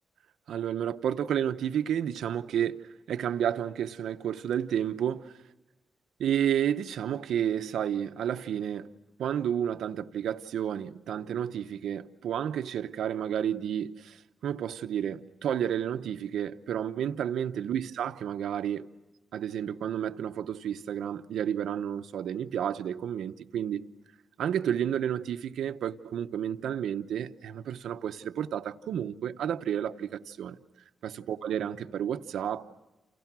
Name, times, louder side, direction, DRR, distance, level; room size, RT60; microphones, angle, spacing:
voice 1, 0.5-2.8 3.1-5.3 6.2-8.9 9.2-18.9 19.3-23.8 24.4-30.6 31.0-32.6, right 9 dB, 90° right, 0.9 m, -31 dB
29.5 x 29.0 x 6.1 m
cardioid pair, 105°, 0 cm